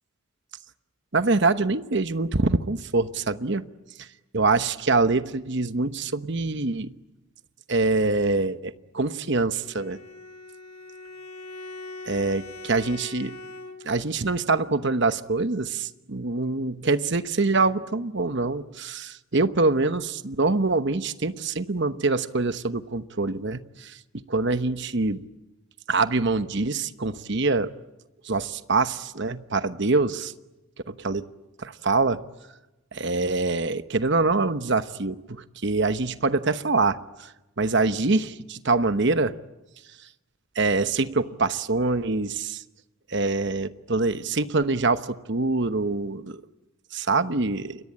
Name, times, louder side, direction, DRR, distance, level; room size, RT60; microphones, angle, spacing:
voice 1, 1.1-3.6 4.3-6.9 7.7-10.0 12.1-13.3 13.8-24.0 24.3-25.2 25.9-27.7 28.2-30.3 30.9-31.3 31.6-32.2 32.9-37.3 37.6-39.3 40.6-42.6 43.1-46.4 46.9-47.8, right 3 dB, 55° right, 11 dB, 1.1 m, -25 dB
Bowed string instrument, 9.6-14.1, left 2 dB, 85° left, 2.9 m, -41 dB
29.0 x 22.5 x 8.8 m, 1.0 s
head